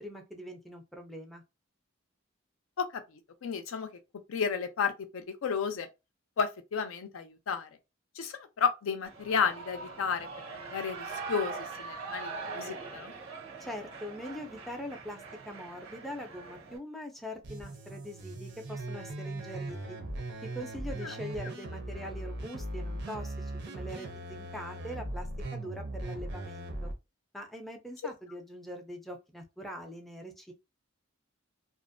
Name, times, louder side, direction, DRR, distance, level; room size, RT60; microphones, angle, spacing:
voice 1, 0.0-1.4 13.6-20.0 20.4-26.9 27.3-30.5, equal, ahead, 0.4 m, -43 dB
voice 2, 2.8-3.9 4.3-5.9 6.4-7.7 8.2-10.3 10.6-13.1 21.0-21.1, left 6 dB, 80° left, 0.4 m, -32 dB
Shout / Cheering, 9.0-16.8, right 4 dB, 90° right, 0.8 m, -42 dB
sound 1, 17.4-26.9, right 1 dB, 55° right, 0.5 m, -39 dB
2.5 x 2.0 x 2.5 m
head